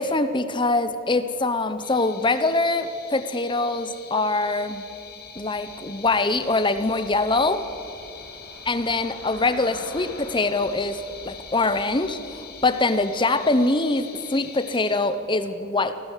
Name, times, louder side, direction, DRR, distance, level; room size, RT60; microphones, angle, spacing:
voice 1, 0.0-4.8 5.4-7.6 8.7-15.9, left 2 dB, 20° left, 11 dB, 0.9 m, -23 dB
sound 1, 1.8-15.0, left 6 dB, 45° left, 3.6 m, -44 dB
Traffic noise roadway noise / Bicycle, 4.6-13.7, equal, 50° right, 3.9 m, -47 dB
24.5 x 17.0 x 7.4 m, 3.0 s
head